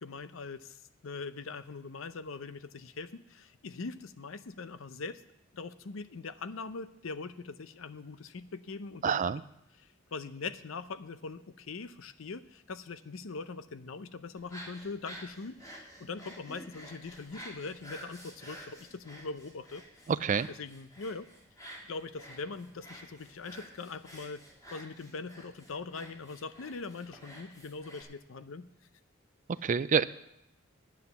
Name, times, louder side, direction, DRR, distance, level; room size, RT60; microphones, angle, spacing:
voice 1, 0.0-5.2 5.5-9.2 9.8-19.8 20.6-21.3 21.9-28.7, left 4 dB, 75° left, 13 dB, 0.6 m, -42 dB
voice 2, 9.0-9.4 20.1-20.5 29.6-30.0, right 6 dB, 40° right, 16 dB, 0.4 m, -27 dB
sound 1, 14.4-28.0, equal, 20° left, 2.3 m, -50 dB
9.6 x 9.3 x 6.9 m, 0.81 s
head